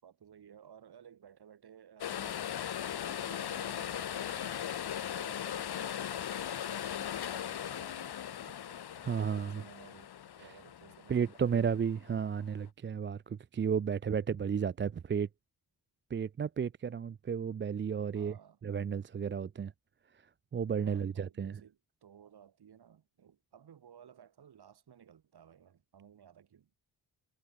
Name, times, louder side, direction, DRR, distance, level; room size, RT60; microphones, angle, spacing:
voice 1, 0.0-2.6 2.9-4.6 5.1-10.1 10.4-11.6 18.1-18.6 20.8-26.7, right 8 dB, 85° right, 4.9 m, -57 dB
sound 1, 2.0-12.3 12.6-12.7, left 10 dB, 80° left, 1.6 m, -39 dB
voice 2, 9.0-9.6 10.4-10.5 11.1-15.3 16.1-18.3 18.6-19.7 20.5-21.6, right 7 dB, 30° right, 0.4 m, -33 dB
wide cardioid pair, 140°, 38 cm